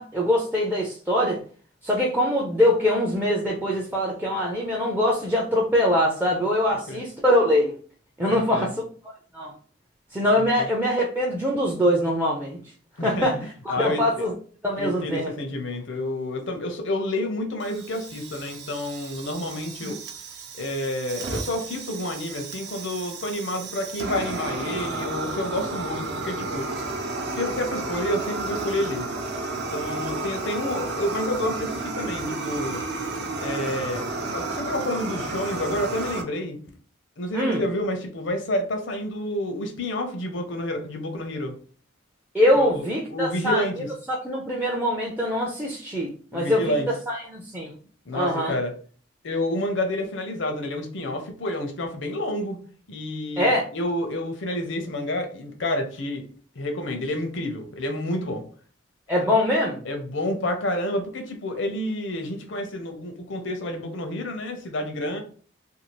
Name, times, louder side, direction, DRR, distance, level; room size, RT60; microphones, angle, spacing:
voice 1, 0.0-1.4 1.8-7.7 8.2-8.7 9.3-9.5 10.1-12.6 13.0-13.4 13.7-14.3 14.6-15.3 19.8-19.9 37.3-37.6 42.3-43.7 44.1-46.7 47.1-47.7 48.1-48.5 53.4-53.6 59.1-59.8, left 1 dB, 10° right, 0.4 m, -23 dB
voice 2, 8.3-8.7 10.3-10.7 13.0-13.3 13.7-14.2 14.8-20.0 20.6-26.6 27.2-29.1 29.7-32.8 33.4-36.6 37.2-41.6 42.6-43.9 46.3-46.9 48.1-48.7 49.2-52.6 52.9-56.2 56.6-58.4 59.8-65.2, left 1 dB, 70° left, 0.6 m, -29 dB
Fire, 17.6-36.2, right 3 dB, 60° right, 0.5 m, -32 dB
2.6 x 2.3 x 3.0 m
head